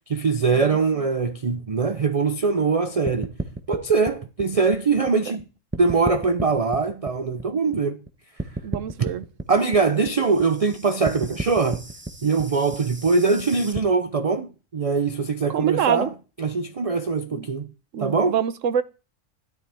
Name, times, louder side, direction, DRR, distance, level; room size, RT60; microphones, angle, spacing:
voice 1, 0.1-3.3 3.7-5.4 5.8-8.0 9.5-11.8 12.2-16.1 16.4-17.7 18.0-18.4, right 4 dB, 45° right, 0.4 m, -22 dB
sound 1, 3.1-5.4 5.7-8.1 8.4-13.8, right 2 dB, 10° right, 0.7 m, -34 dB
voice 2, 8.6-9.2 15.5-16.1 17.3-17.5 17.9-18.8, right 8 dB, 75° right, 1.1 m, -25 dB
13.0 x 11.5 x 3.4 m
omnidirectional pair, 1.4 m